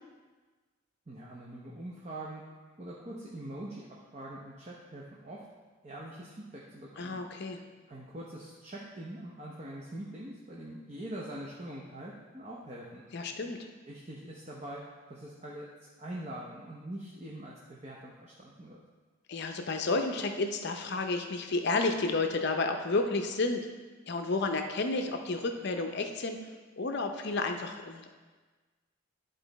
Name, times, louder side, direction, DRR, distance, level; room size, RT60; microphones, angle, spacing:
voice 1, 1.1-2.4 2.8-3.9 4.1-5.4 5.8-7.2 7.9-13.0 13.9-18.8, right 1 dB, 30° right, -4 dB, 0.7 m, -43 dB
voice 2, 7.0-7.6 13.1-13.7 19.3-23.7 24.1-26.4 26.8-28.1, left 3 dB, 50° left, 5 dB, 0.6 m, -31 dB
11.0 x 3.9 x 4.1 m, 1.3 s
head